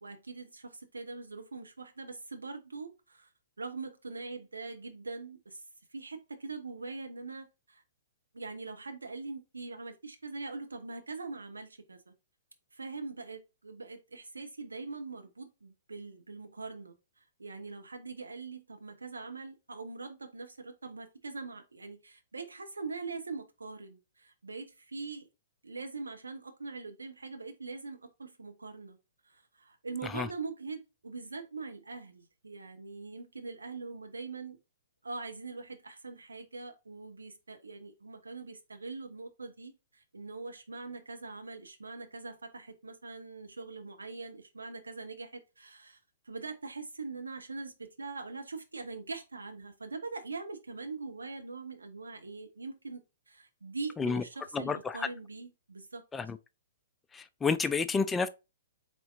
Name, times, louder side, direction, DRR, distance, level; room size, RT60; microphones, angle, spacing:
voice 1, 0.0-3.3 3.6-5.6 5.9-7.8 8.3-12.1 12.7-25.3 25.6-29.0 29.3-34.6 35.0-46.0 46.2-56.0, right 4 dB, 75° right, 0.9 m, -42 dB
voice 2, 54.5-55.1 56.1-56.4 57.1-58.3, left 5 dB, 10° left, 0.3 m, -30 dB
4.2 x 3.6 x 2.6 m
figure-of-eight pair, 115°, 0 cm